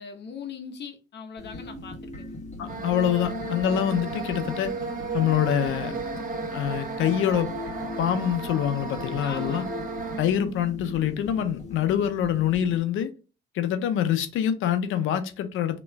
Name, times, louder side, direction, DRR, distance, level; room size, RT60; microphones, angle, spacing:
voice 1, 0.0-2.4 9.2-9.7, left 6 dB, 60° left, 1.0 m, -40 dB
sound 1, 1.4-12.8, left 2 dB, 35° left, 1.4 m, -39 dB
voice 2, 2.6-4.7 5.1-5.9 6.5-7.5 8.0-9.6 10.2-13.1 13.5-15.8, left 10 dB, 85° left, 0.7 m, -25 dB
sound 2, 2.7-10.2, right 4 dB, 45° right, 1.1 m, -34 dB
3.1 x 3.0 x 4.6 m
cardioid pair, 90°, 20 cm